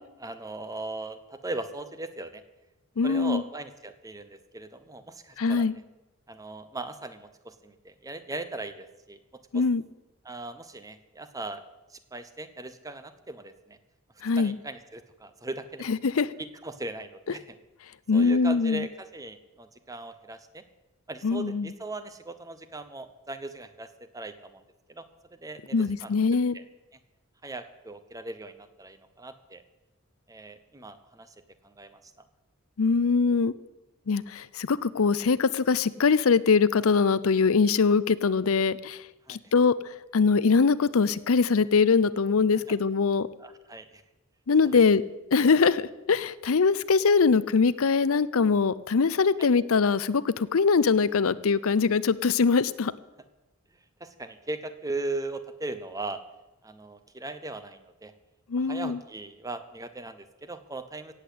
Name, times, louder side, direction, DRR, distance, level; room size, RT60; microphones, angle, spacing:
voice 1, 0.2-2.4 3.0-5.7 6.3-9.2 9.5-9.6 10.2-11.6 11.9-13.8 14.4-15.9 16.6-17.6 18.1-20.6 21.1-24.6 24.9-25.0 25.4-26.1 26.5-26.6 27.4-29.6 30.3-31.3 31.6-32.0 39.3-39.4 43.4-44.0 44.6-44.8 49.4-49.5 54.0-56.2 56.6-58.1 58.6-61.1, right 2 dB, 15° right, 11 dB, 0.9 m, -38 dB
voice 2, 3.0-3.4 5.4-5.8 9.5-9.8 14.2-14.6 15.9-16.3 18.1-18.9 21.2-21.7 25.7-26.6 32.8-33.5 34.1-39.0 39.3-43.3 44.5-45.0 45.3-52.9 58.5-59.0, left 5 dB, 70° left, 17 dB, 0.6 m, -23 dB
16.5 x 8.2 x 8.4 m, 1.0 s
head